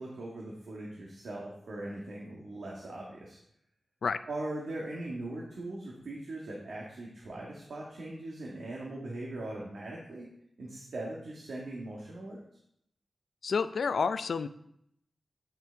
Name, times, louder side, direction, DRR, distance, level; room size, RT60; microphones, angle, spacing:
voice 1, 0.0-3.4 4.3-10.3 10.6-12.4, right 2 dB, 85° right, -4 dB, 1.6 m, -40 dB
voice 2, 13.4-14.5, left 5 dB, 85° left, 12 dB, 0.4 m, -29 dB
9.2 x 6.0 x 4.5 m, 0.73 s
wide cardioid pair, 140°, 0 cm